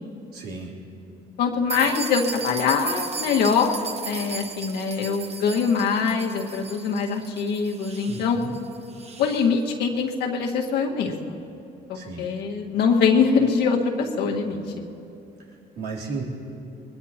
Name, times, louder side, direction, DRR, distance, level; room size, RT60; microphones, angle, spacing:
voice 1, 0.3-0.7 8.1-8.6 11.9-12.3 15.8-16.2, right 4 dB, 70° right, -4 dB, 3.4 m, -34 dB
voice 2, 1.4-3.7 4.0-8.4 9.2-11.3 11.9-14.6, left 5 dB, 75° left, 1 dB, 1.7 m, -23 dB
sound 1, 1.7-9.5, right 4 dB, 40° right, 1.2 m, -36 dB
22.5 x 20.5 x 2.9 m, 2.8 s
cardioid pair, 110°, 17 cm